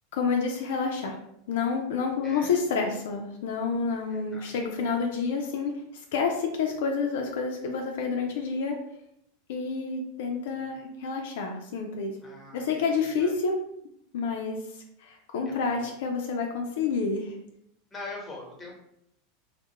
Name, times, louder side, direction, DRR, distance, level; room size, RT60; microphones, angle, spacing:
voice 1, 0.1-1.2 1.5-5.7 6.1-8.8 9.5-12.2 12.5-13.6 14.1-14.6 15.0-17.4, left 5 dB, 70° left, 2 dB, 0.3 m, -29 dB
voice 2, 2.2-2.5 4.1-4.9 10.5-10.8 12.2-13.3 15.4-15.9 17.9-18.7, left 2 dB, 15° left, -1 dB, 1.0 m, -44 dB
2.3 x 2.0 x 2.8 m, 0.77 s
hypercardioid pair, 100°, 0 cm